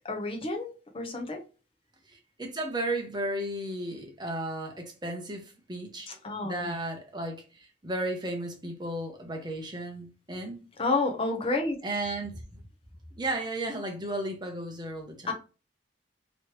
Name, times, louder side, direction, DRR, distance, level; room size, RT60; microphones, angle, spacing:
voice 1, 0.0-1.4 6.1-6.7 10.8-11.8 15.3-15.4, left 3 dB, 30° left, 0.7 m, -30 dB
voice 2, 2.1-6.1 6.4-10.6 11.8-12.6 13.2-15.3, right 1 dB, 25° right, 0.9 m, -34 dB
3.1 x 3.0 x 3.1 m
head